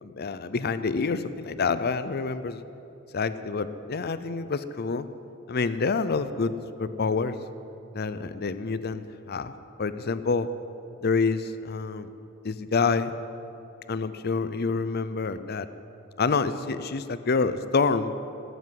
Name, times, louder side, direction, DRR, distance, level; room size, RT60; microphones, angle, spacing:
voice 1, 0.0-2.6 3.1-5.1 5.5-6.5 6.8-7.4 7.9-9.5 9.8-10.5 11.0-12.1 12.4-13.1 13.9-15.7 16.2-18.1, left 4 dB, 50° left, 13 dB, 0.6 m, -27 dB
17.0 x 8.1 x 9.5 m, 2.9 s
head